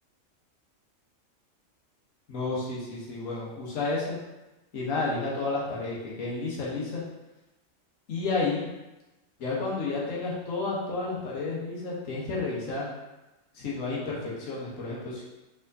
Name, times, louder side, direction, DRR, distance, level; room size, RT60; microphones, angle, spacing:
voice 1, 2.3-4.2 4.7-7.0 8.1-8.7 9.4-12.9 13.5-15.2, left 3 dB, 75° left, -6 dB, 1.4 m, -31 dB
4.3 x 3.6 x 2.7 m, 1.0 s
omnidirectional pair, 1.4 m